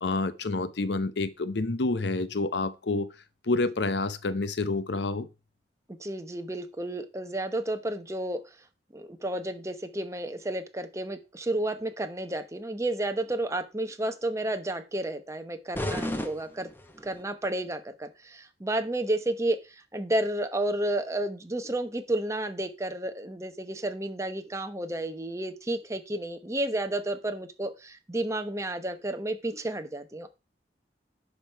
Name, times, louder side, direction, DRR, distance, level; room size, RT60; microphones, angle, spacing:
voice 1, 0.0-3.1 3.4-5.3, left 3 dB, 70° left, 0.8 m, -28 dB
voice 2, 6.0-8.4 8.9-16.7 17.0-19.6 19.9-30.3, right 1 dB, 15° right, 0.9 m, -31 dB
sound 1, 15.7-17.2, left 1 dB, 10° left, 0.8 m, -33 dB
10.0 x 5.5 x 4.5 m
head